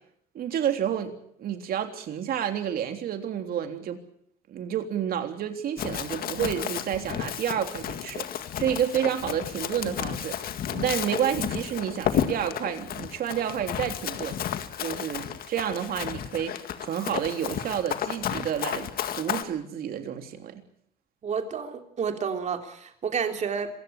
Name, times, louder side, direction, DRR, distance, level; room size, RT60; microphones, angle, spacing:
voice 1, 0.3-4.0 4.5-14.4 14.8-20.6, right 9 dB, 60° right, 6 dB, 3.4 m, -30 dB
Run, 5.8-19.4, left 9 dB, 60° left, 1.9 m, -32 dB
voice 2, 21.2-23.7, right 6 dB, 45° right, 5 dB, 3.5 m, -30 dB
26.0 x 16.5 x 8.5 m, 0.69 s
cardioid pair, 110°, 17 cm